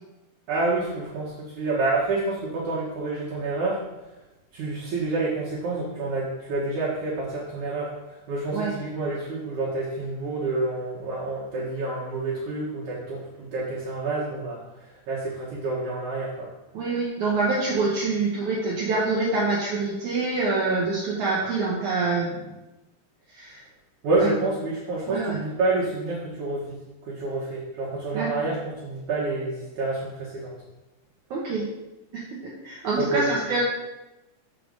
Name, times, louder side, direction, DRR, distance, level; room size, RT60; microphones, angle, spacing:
voice 1, 0.5-3.8 4.5-7.9 8.3-14.6 15.1-16.5 24.0-26.6 27.0-30.5 33.0-33.3, right 2 dB, 60° right, -7 dB, 2.2 m, -28 dB
voice 2, 16.7-22.4 23.3-23.6 24.2-24.3 25.1-25.4 28.1-28.5 31.3-31.6 32.1-33.6, right 3 dB, 80° right, -5 dB, 1.7 m, -26 dB
6.7 x 5.2 x 6.5 m, 1.0 s
omnidirectional pair, 5.2 m